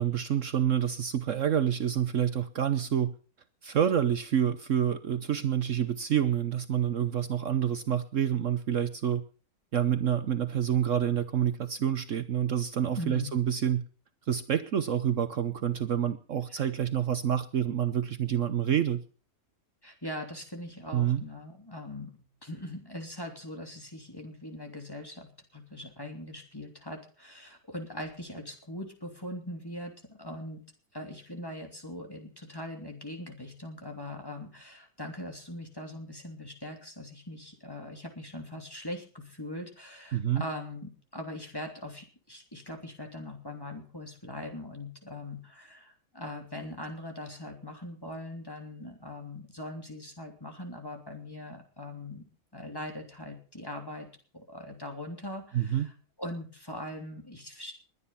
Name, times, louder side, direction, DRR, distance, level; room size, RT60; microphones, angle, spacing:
voice 1, 0.0-3.1 3.6-9.2 9.7-13.8 14.3-19.0 20.9-21.2 40.1-40.4 55.5-55.9, right 9 dB, 60° right, 11 dB, 1.2 m, -28 dB
voice 2, 12.9-13.3 16.5-16.7 19.8-29.9 30.2-30.6 30.9-52.2 52.5-54.1 54.3-55.9 56.2-57.7, left 1 dB, 15° left, 3 dB, 3.0 m, -41 dB
21.5 x 9.7 x 5.6 m, 0.39 s
omnidirectional pair, 1.5 m